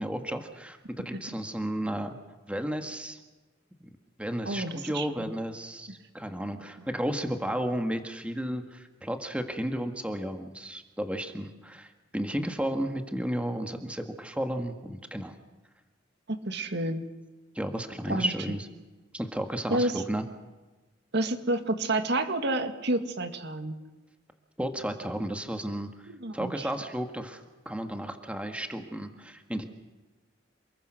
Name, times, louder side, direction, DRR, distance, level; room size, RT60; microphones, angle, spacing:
voice 1, 0.0-2.2 2.5-3.2 4.2-15.4 17.5-18.7 19.1-20.2 24.6-29.6, equal, 5° right, 6 dB, 1.7 m, -33 dB
voice 2, 4.5-5.1 16.3-17.0 18.1-18.3 19.7-19.9 21.1-23.8 26.1-26.7, right 2 dB, 60° right, 8 dB, 1.9 m, -29 dB
28.0 x 21.5 x 6.4 m, 1.2 s
head